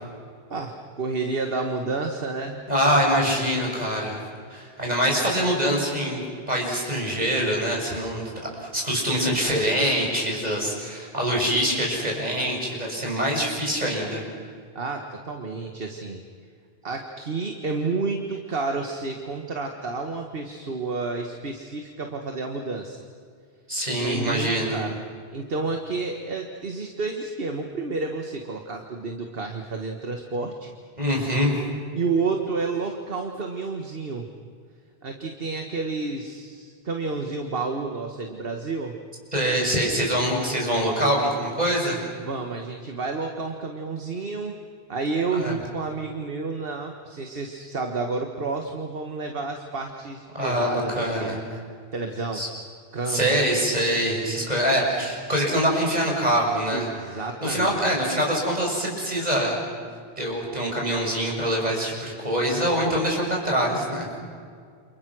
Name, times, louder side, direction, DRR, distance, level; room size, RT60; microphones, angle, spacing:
voice 1, 0.5-3.0 14.8-16.2 16.8-23.0 24.0-25.0 25.3-30.7 32.0-34.3 35.0-38.9 42.2-44.5 44.9-51.4 51.9-52.4 52.9-53.4 56.7-57.8, right 3 dB, 65° right, 4 dB, 1.8 m, -30 dB
voice 2, 2.7-4.2 4.5-6.2 6.5-8.3 8.6-14.2 23.7-24.8 31.0-31.5 39.3-42.0 45.4-45.5 50.3-51.4 52.3-52.5 53.1-56.9 57.4-59.5 60.2-64.1, equal, 40° right, -2 dB, 6.8 m, -24 dB
30.0 x 28.0 x 6.3 m, 2.1 s
omnidirectional pair, 1.0 m